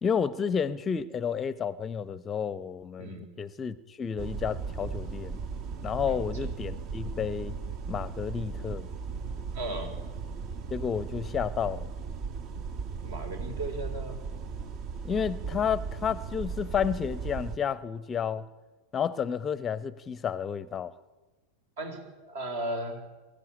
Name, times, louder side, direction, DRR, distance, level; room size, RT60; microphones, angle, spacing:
voice 1, 0.0-5.4 5.8-7.6 7.9-8.9 10.7-11.9 15.0-18.5 18.9-20.9, left 7 dB, 20° left, 0.7 m, -31 dB
voice 2, 3.0-3.3 6.0-6.5 9.5-10.0 13.0-14.2 21.8-23.1, right 1 dB, 55° right, 4.0 m, -36 dB
sound 1, 4.2-17.6, right 5 dB, 40° right, 1.1 m, -37 dB
23.0 x 14.0 x 9.9 m
figure-of-eight pair, 90°, 0 cm